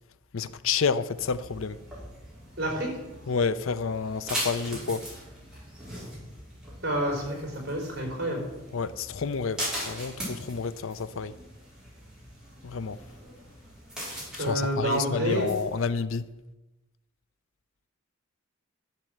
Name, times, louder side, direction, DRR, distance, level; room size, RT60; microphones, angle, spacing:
voice 1, 0.3-1.8 3.3-5.1 8.7-11.4 12.6-13.0 14.4-16.3, left 5 dB, 70° left, 0.6 m, -29 dB
sound 1, 1.1-15.8, equal, 5° right, 5.4 m, -40 dB
voice 2, 2.6-2.9 6.8-8.4 14.4-15.5, right 1 dB, 50° right, 4.4 m, -28 dB
12.0 x 7.5 x 8.0 m
head